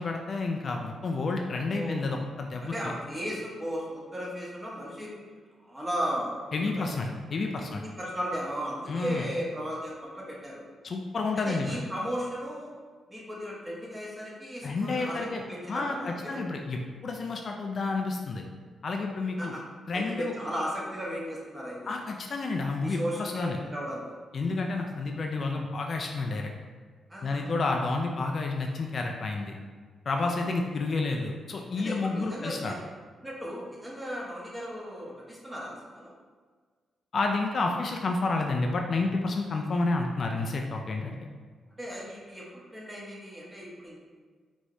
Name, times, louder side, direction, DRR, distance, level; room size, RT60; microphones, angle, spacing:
voice 1, 0.0-2.9 6.5-7.8 8.9-9.3 10.8-11.8 14.6-15.4 15.7-18.4 18.8-19.5 19.9-20.3 21.9-23.6 24.3-26.5 27.2-29.6 30.1-32.7 37.1-41.2, left 3 dB, 50° left, 2 dB, 0.4 m, -30 dB
voice 2, 1.7-2.1 2.6-5.1 5.6-6.9 7.6-10.6 11.4-12.7 13.1-16.4 19.4-19.6 19.9-21.8 22.8-24.2 27.1-27.5 30.2-30.5 31.8-32.8 33.2-36.1 41.8-44.0, equal, 15° right, -5 dB, 1.2 m, -36 dB
4.7 x 3.1 x 2.7 m, 1.5 s
cardioid pair, 85°, 0 cm